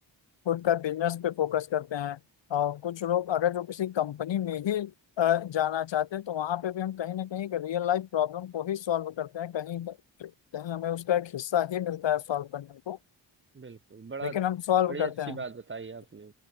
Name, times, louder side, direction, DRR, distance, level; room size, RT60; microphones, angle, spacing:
voice 1, 0.4-2.2 2.5-13.0 14.2-15.4, left 11 dB, 90° left, 1.3 m, -29 dB
voice 2, 13.5-14.4 14.9-16.3, right 4 dB, 25° right, 1.4 m, -39 dB
wide cardioid pair, 180°, 43 cm